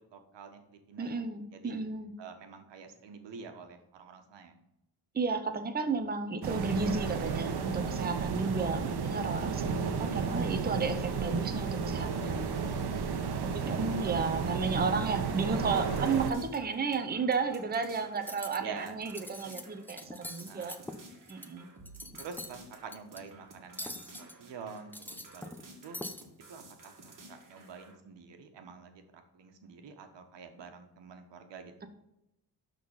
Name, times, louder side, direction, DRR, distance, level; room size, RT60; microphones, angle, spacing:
voice 1, 0.1-1.2 1.5-1.7 2.2-4.6 13.2-14.0 18.6-18.9 20.5-20.8 22.2-25.5 25.8-26.0 26.5-27.1 27.5-31.9, right 5 dB, 85° right, 6 dB, 1.4 m, -47 dB
voice 2, 1.0-2.1 5.1-12.5 13.5-20.8 21.3-21.7, right 4 dB, 20° right, 7 dB, 0.8 m, -33 dB
sound 1, 6.4-16.3, right 5 dB, 65° right, 1.1 m, -33 dB
sound 2, 15.6-28.0, right 2 dB, 50° right, 2.2 m, -54 dB
Cutlery silverware, 18.2-18.6 19.0-19.6 19.9-21.5 21.8-22.5 22.9-23.2 23.8-24.3 24.8-25.7 25.9-26.2, left 1 dB, 5° left, 0.6 m, -43 dB
11.5 x 4.0 x 5.6 m, 0.87 s
wide cardioid pair, 130°, 42 cm